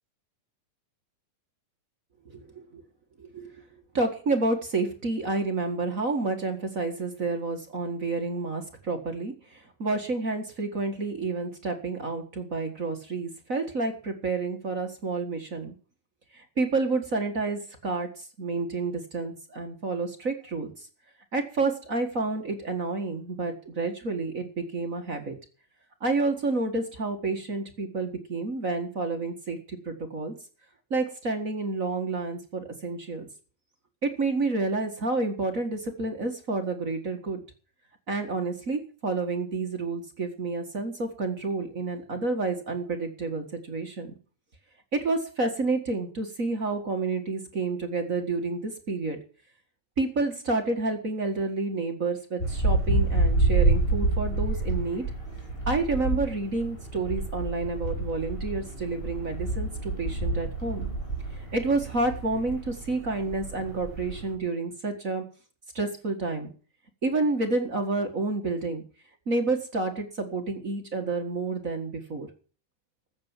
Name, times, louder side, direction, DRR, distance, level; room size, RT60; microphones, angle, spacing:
voice 1, 2.2-2.8 3.2-3.5 3.9-15.7 16.3-20.7 21.3-25.3 26.0-30.3 30.9-33.3 34.0-37.4 38.1-44.2 44.9-49.2 50.0-55.0 55.7-60.9 61.5-65.2 65.7-66.5 67.0-68.8 69.3-72.3, right 3 dB, 35° right, 4 dB, 1.5 m, -29 dB
sound 1, 52.4-64.3, right 2 dB, 15° left, 6.1 m, -28 dB
14.5 x 8.8 x 7.3 m, 0.39 s
omnidirectional pair, 3.9 m